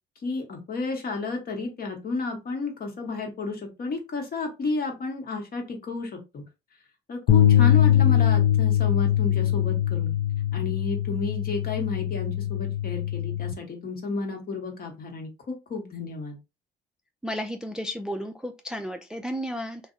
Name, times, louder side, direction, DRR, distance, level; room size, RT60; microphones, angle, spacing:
voice 1, 0.2-6.4 7.1-10.1 10.5-16.4, left 3 dB, 50° left, 1.0 m, -32 dB
sound 1, 7.3-13.5, left 11 dB, 70° left, 0.5 m, -22 dB
voice 2, 17.2-19.8, equal, 5° right, 0.3 m, -33 dB
2.5 x 2.1 x 2.5 m
supercardioid pair, 60°, 20 cm